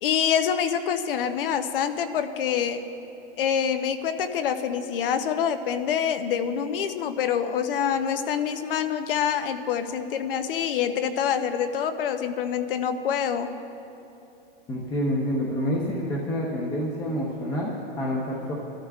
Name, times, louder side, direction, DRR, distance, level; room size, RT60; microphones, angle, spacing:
voice 1, 0.0-2.9 3.4-13.5, left 8 dB, 65° left, 9 dB, 0.8 m, -26 dB
voice 2, 14.7-18.5, equal, 15° left, -3 dB, 0.8 m, -28 dB
22.0 x 12.5 x 2.4 m, 2.9 s
supercardioid pair, 160°, 30 cm